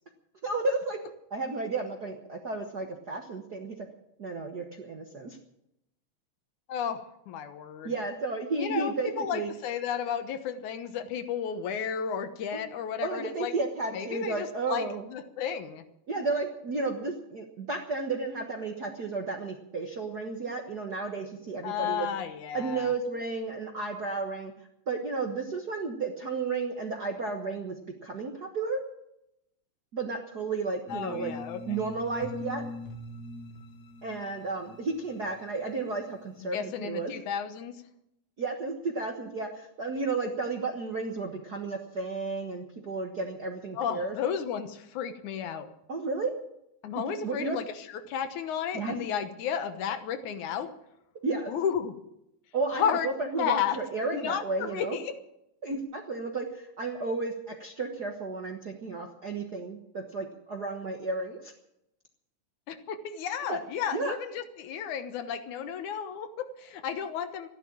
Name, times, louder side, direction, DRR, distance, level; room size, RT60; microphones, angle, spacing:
voice 1, 0.4-1.0 1.3-3.7 4.2-5.4 7.8-9.5 13.0-15.0 16.1-22.1 22.5-24.5 24.9-27.7 28.0-28.8 29.9-31.3 31.7-32.6 34.0-37.1 38.4-44.1 45.9-46.3 47.2-47.6 48.7-49.0 51.2-51.5 52.5-55.0 55.6-57.3 57.6-61.5 63.5-63.6 63.9-64.2, right 3 dB, 50° right, 3 dB, 1.2 m, -32 dB
voice 2, 6.7-7.9 8.6-13.5 13.9-15.8 21.6-22.9 30.9-31.8 36.4-37.7 43.8-45.7 46.8-50.7 51.5-51.9 52.7-53.1 53.4-53.8 54.1-55.2 62.7-67.5, left 8 dB, 75° left, 9 dB, 2.5 m, -33 dB
sound 1, 30.9-36.0, left 2 dB, 55° left, 1.1 m, -42 dB
14.0 x 11.5 x 8.6 m, 0.82 s
omnidirectional pair, 3.6 m